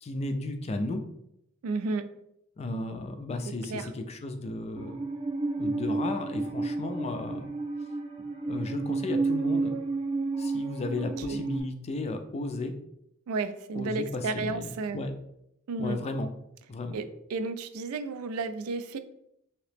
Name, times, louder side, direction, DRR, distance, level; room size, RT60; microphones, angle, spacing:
voice 1, 0.0-1.0 2.6-5.0 5.6-7.5 8.4-9.7 10.4-12.7 13.8-15.1 15.8-16.3 16.7-17.0, left 2 dB, 30° left, 6 dB, 0.3 m, -34 dB
voice 2, 1.6-2.1 3.7-3.9 10.9-11.4 13.3-15.0 15.7-16.0 16.9-19.0, right 3 dB, 80° right, 10 dB, 0.3 m, -32 dB
Musical instrument, 4.8-11.6, right 3 dB, 25° right, 0.5 m, -31 dB
2.9 x 2.8 x 3.3 m, 0.77 s
head